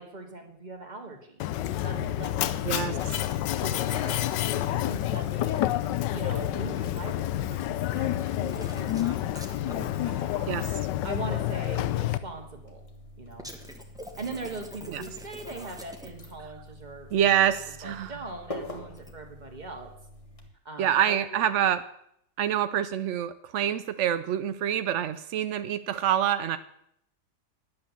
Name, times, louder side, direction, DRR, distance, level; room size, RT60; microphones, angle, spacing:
voice 1, 0.0-3.1 3.5-5.6 6.1-7.2 7.4-8.9 10.0-10.7 11.0-12.8 13.2-13.5 14.2-19.9 20.7-21.7, right 3 dB, 25° right, 4 dB, 1.9 m, -41 dB
Mechanisms, 1.4-12.2, left 13 dB, 85° left, 1.3 m, -29 dB
sound 1, 1.9-20.5, left 1 dB, 20° left, 1.6 m, -47 dB
sound 2, 8.5-9.9 13.4-16.3 18.9-19.1, equal, ahead, 1.1 m, -44 dB
voice 2, 17.1-18.1 20.8-21.8 22.4-26.6, right 10 dB, 80° right, 12 dB, 0.6 m, -26 dB
10.5 x 8.8 x 7.2 m, 0.74 s
omnidirectional pair, 1.9 m